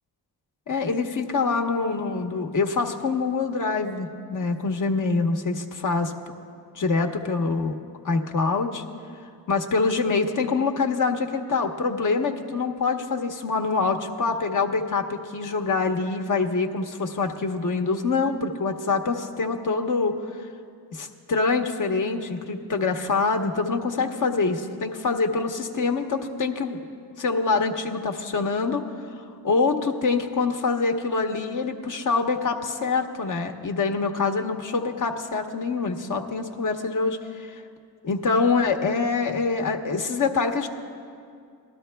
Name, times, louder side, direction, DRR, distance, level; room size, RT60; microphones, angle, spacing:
voice 1, 0.7-6.1 6.7-7.7 8.0-8.8 9.5-20.4 20.9-26.8 27.2-28.8 29.2-37.6 38.0-40.7, left 4 dB, 50° left, 4 dB, 1.0 m, -25 dB
19.0 x 12.5 x 2.3 m, 2.3 s
cardioid pair, 70°, 41 cm